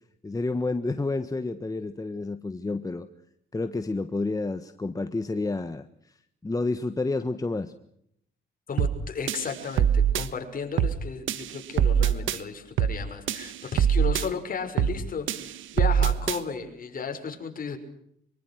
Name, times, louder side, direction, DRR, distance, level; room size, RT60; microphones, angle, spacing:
voice 1, 0.2-3.1 3.5-6.2 6.4-7.7, left 3 dB, 15° left, 9 dB, 1.4 m, -30 dB
voice 2, 8.7-17.8, left 5 dB, 45° left, 5 dB, 6.0 m, -34 dB
sound 1, 8.8-9.0 9.3-10.3 10.8-11.0 11.3-12.4 12.8-13.0 13.3-14.3 14.8-15.0 15.3-16.4, right 9 dB, 80° right, 1.6 m, -23 dB
25.0 x 24.0 x 6.5 m, 0.73 s
cardioid pair, 90°, 20 cm